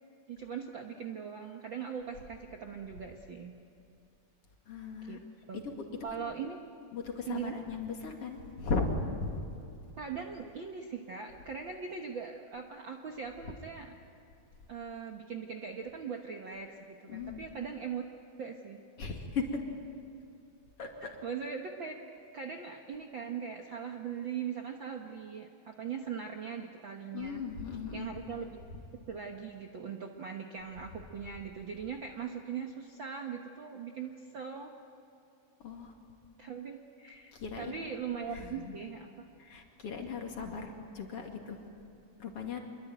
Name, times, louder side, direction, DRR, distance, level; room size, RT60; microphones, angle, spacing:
voice 1, 0.3-3.5 5.1-5.2 5.5-5.6 6.0-6.6 7.3-7.6 10.0-13.9 14.7-18.0 18.4-18.8 21.0-21.9 22.3-27.4 27.9-28.6 29.1-34.7 36.4-39.3, right 6 dB, 55° right, 3 dB, 1.4 m, -40 dB
voice 2, 4.7-5.2 5.5-5.7 6.1-6.3 6.9-8.9 9.2-9.3 17.1-17.4 19.0-19.6 20.8-21.1 27.1-28.1 35.6-35.9 37.3-37.7 38.3-38.8 39.4-41.6 42.2-42.6, left 4 dB, 50° left, 2 dB, 3.1 m, -37 dB
26.0 x 23.0 x 9.2 m, 2.6 s
omnidirectional pair, 3.6 m